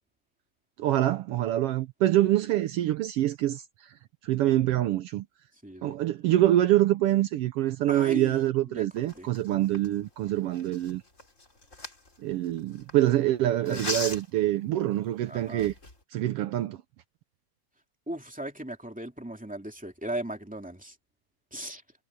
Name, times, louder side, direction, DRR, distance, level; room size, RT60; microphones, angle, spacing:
voice 1, 0.8-3.6 4.2-5.3 5.8-11.0 12.2-15.7 16.1-16.8, right 14 dB, 80° right, 1.3 m, -25 dB
voice 2, 5.6-6.0 7.9-9.3 13.6-13.8 15.3-15.7 18.1-21.0 21.5-21.8, right 1 dB, 5° right, 2.2 m, -37 dB
Tearing book pages, 9.0-12.9 13.7-14.4 15.0-15.1 15.5-16.0, left 2 dB, 25° left, 4.3 m, -38 dB
omnidirectional pair, 3.4 m